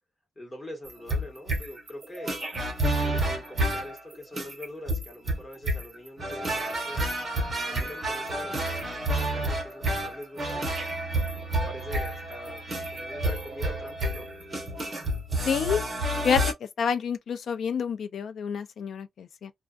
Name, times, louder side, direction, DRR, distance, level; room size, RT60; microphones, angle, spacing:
voice 1, 0.3-2.4 3.0-7.0 7.7-10.7 11.3-14.3, left 1 dB, 15° left, 1.3 m, -43 dB
sound 1, 0.9-16.5, right 1 dB, 30° right, 0.8 m, -30 dB
voice 2, 15.5-15.8 16.2-16.4 16.8-19.5, left 7 dB, 65° left, 0.4 m, -28 dB
2.4 x 2.3 x 2.3 m
wide cardioid pair, 160°, 0 cm